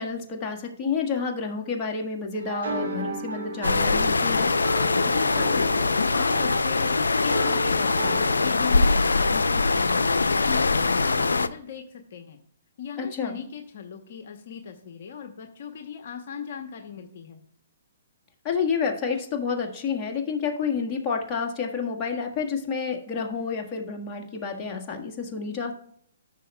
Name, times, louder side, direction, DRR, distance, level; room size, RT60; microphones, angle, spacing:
voice 1, 0.0-4.5 13.0-13.4 18.4-25.7, left 5 dB, 25° left, 1 dB, 1.6 m, -29 dB
sound 1, 2.3-8.4, right 3 dB, 80° right, 2.2 m, -34 dB
sound 2, 3.6-11.5, left 3 dB, 90° left, 0.5 m, -22 dB
voice 2, 5.0-12.4 12.8-17.4, left 7 dB, 55° left, 4 dB, 0.9 m, -38 dB
14.5 x 6.5 x 2.3 m, 0.66 s
hypercardioid pair, 135°, 0 cm